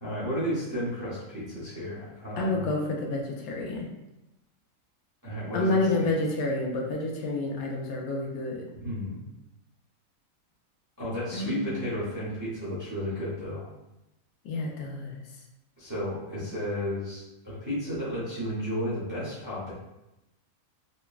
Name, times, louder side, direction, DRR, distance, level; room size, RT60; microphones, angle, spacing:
voice 1, 0.0-2.6 5.2-6.0 8.8-9.2 11.0-13.7 15.8-19.7, equal, 20° right, -9 dB, 0.5 m, -33 dB
voice 2, 2.4-3.9 5.5-8.6 11.3-11.9 14.4-15.2 16.3-16.4, left 2 dB, 85° left, 0 dB, 1.0 m, -29 dB
3.2 x 2.1 x 2.3 m, 0.92 s
omnidirectional pair, 1.5 m